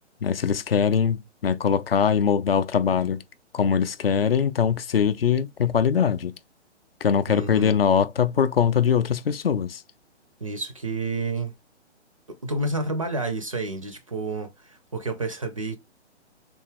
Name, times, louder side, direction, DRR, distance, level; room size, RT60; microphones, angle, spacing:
voice 1, 0.2-3.2 3.5-6.3 7.0-9.8, left 7 dB, 55° left, 0.4 m, -22 dB
voice 2, 7.3-7.8 10.4-11.5 12.3-15.8, right 2 dB, 30° right, 0.4 m, -30 dB
3.4 x 2.6 x 3.1 m
figure-of-eight pair, 130°, 35 cm